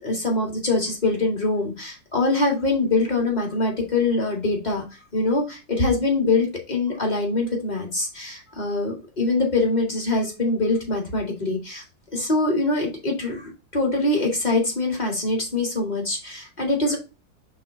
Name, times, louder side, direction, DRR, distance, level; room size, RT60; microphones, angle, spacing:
voice 1, 0.0-4.8 5.1-11.8 12.1-17.0, left 2 dB, 25° left, 0 dB, 1.9 m, -24 dB
5.4 x 3.6 x 4.8 m, 0.28 s
omnidirectional pair, 2.0 m